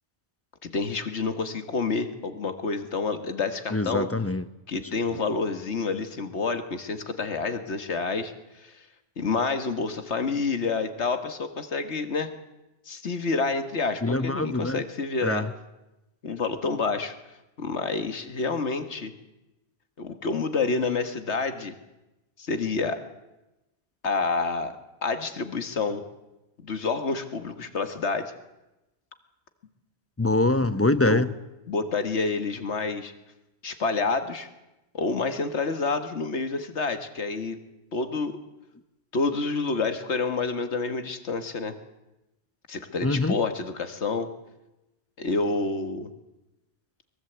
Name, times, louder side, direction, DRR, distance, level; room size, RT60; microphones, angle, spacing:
voice 1, 0.6-4.1 4.7-8.7 9.2-12.3 12.9-15.5 16.2-17.1 17.6-19.1 20.0-21.7 22.4-23.0 24.0-26.0 26.6-28.3 31.1-31.3 31.7-33.1 33.6-34.5 34.9-37.6 37.9-38.4 39.1-41.8 42.7-44.3 45.2-46.1, left 4 dB, 80° left, 8 dB, 1.9 m, -28 dB
voice 2, 3.7-4.4 4.7-4.8 14.0-14.8 15.2-15.5 30.2-31.3 43.0-43.4, left 2 dB, 15° left, 13 dB, 0.6 m, -24 dB
23.0 x 21.5 x 8.1 m, 0.99 s
omnidirectional pair, 1.1 m